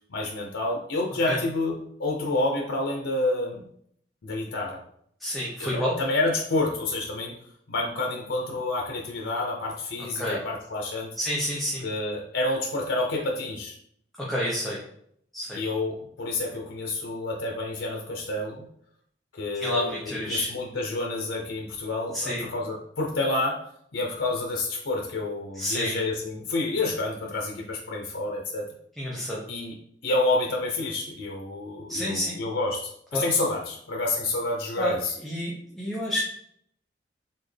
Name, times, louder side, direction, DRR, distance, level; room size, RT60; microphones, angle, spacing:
voice 1, 0.1-1.7 2.0-3.6 4.2-4.8 5.6-7.4 7.7-11.1 11.8-13.7 15.5-18.7 19.3-23.6 23.9-28.7 29.5-29.8 30.0-35.1, left 2 dB, 90° left, 0 dB, 0.6 m, -29 dB
voice 2, 5.2-5.9 10.2-10.4 11.2-11.8 14.2-14.8 15.3-15.6 19.6-20.5 22.1-22.4 25.5-26.0 29.0-29.4 31.9-32.4 33.1-33.2 34.8-36.2, equal, ahead, -6 dB, 0.8 m, -29 dB
4.3 x 3.6 x 3.3 m, 0.68 s
head